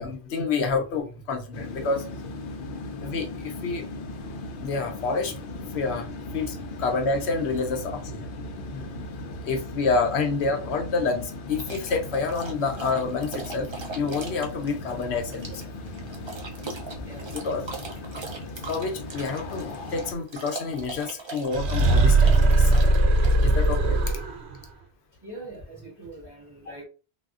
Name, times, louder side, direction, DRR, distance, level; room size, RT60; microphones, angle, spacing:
voice 1, 0.0-2.0 3.0-3.8 4.6-5.3 5.7-6.5 6.8-8.3 8.7-9.0 9.5-13.7 13.9-15.5 17.4-17.6 18.7-22.8 23.4-24.0, left 4 dB, 85° left, 1.0 m, -28 dB
sound 1, 1.5-20.1, left 2 dB, 60° left, 0.7 m, -38 dB
sound 2, 11.6-24.1, right 4 dB, 40° right, 0.4 m, -40 dB
voice 2, 16.9-17.3 25.2-26.8, right 1 dB, 25° right, 1.4 m, -42 dB
sound 3, 21.5-24.5, right 2 dB, 85° right, 0.8 m, -19 dB
3.5 x 2.3 x 2.4 m
omnidirectional pair, 1.1 m